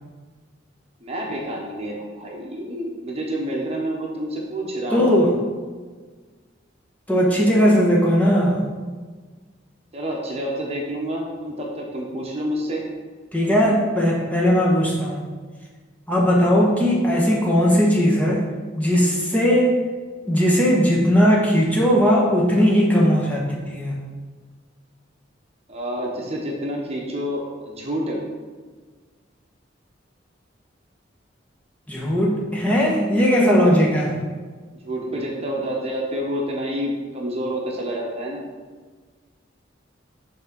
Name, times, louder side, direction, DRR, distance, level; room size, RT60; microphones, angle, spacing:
voice 1, 1.0-5.4 9.9-12.8 14.7-14.8 25.7-28.2 34.8-38.5, equal, 35° right, -2 dB, 1.1 m, -28 dB
voice 2, 4.9-5.3 7.1-8.6 13.3-15.3 16.1-18.4 18.8-19.8 20.3-23.9 31.9-34.1, equal, 10° left, -4 dB, 1.1 m, -18 dB
6.4 x 3.6 x 6.0 m, 1.4 s
head